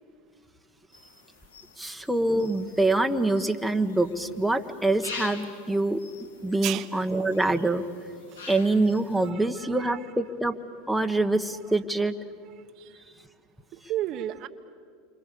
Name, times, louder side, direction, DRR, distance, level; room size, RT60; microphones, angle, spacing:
sound 1, 0.9-9.3, left 4 dB, 85° left, 2.2 m, -46 dB
voice 1, 1.8-6.0 6.4-7.8 8.5-10.5 10.9-12.1, right 2 dB, ahead, 5 dB, 1.3 m, -25 dB
voice 2, 9.2-10.1 11.1-11.2 12.8-13.0 13.7-14.5, right 13 dB, 50° right, 8 dB, 1.0 m, -34 dB
28.5 x 25.0 x 6.9 m, 2.1 s
hypercardioid pair, 95°, 0 cm